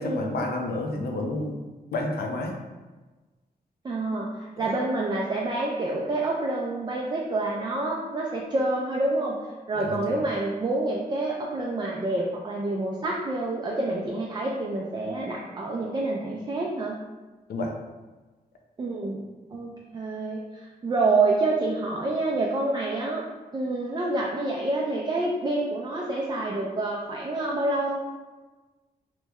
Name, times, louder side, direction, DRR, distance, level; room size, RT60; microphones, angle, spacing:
voice 1, 0.0-1.6 1.9-2.6 4.6-4.7 9.8-10.2 17.5-17.7, left 2 dB, 80° left, 1 dB, 0.5 m, -30 dB
voice 2, 3.8-9.4 9.7-17.0 18.8-19.2 19.5-23.2 23.5-27.9, right 2 dB, 25° right, -3 dB, 0.3 m, -27 dB
3.0 x 2.1 x 3.5 m, 1.2 s
wide cardioid pair, 135°, 16 cm